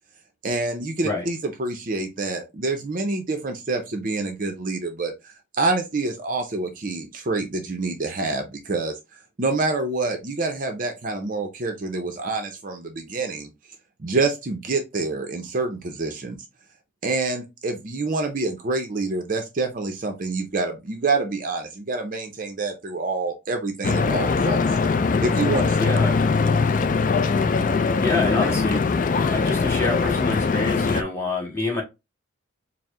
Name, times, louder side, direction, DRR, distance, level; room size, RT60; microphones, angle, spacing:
voice 1, 0.4-9.0 9.4-13.5 14.0-16.4 17.0-24.8 25.2-25.8 26.5-26.7, right 3 dB, 40° right, 0.5 m, -27 dB
Stream / Boat Water vehicle, 23.8-31.0, left 4 dB, 40° left, 0.3 m, -21 dB
voice 2, 25.8-26.3 27.9-31.8, left 3 dB, 15° left, 1.4 m, -27 dB
4.5 x 2.0 x 3.6 m
head